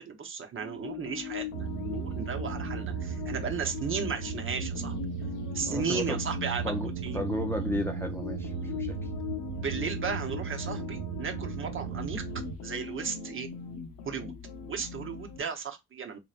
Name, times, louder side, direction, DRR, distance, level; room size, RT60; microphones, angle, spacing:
voice 1, 0.0-5.0 5.5-6.6 7.0-7.3 9.6-12.2 12.6-13.5 14.0-14.3 14.7-16.2, right 6 dB, 45° right, 0.9 m, -35 dB
sound 1, 0.6-15.4, left 8 dB, 85° left, 0.8 m, -40 dB
sound 2, 1.5-12.6, right 6 dB, 70° right, 0.6 m, -36 dB
voice 2, 5.7-6.2 6.6-6.9 7.1-9.0, left 1 dB, 10° left, 0.5 m, -33 dB
3.8 x 3.1 x 2.5 m
cardioid pair, 90°, 30 cm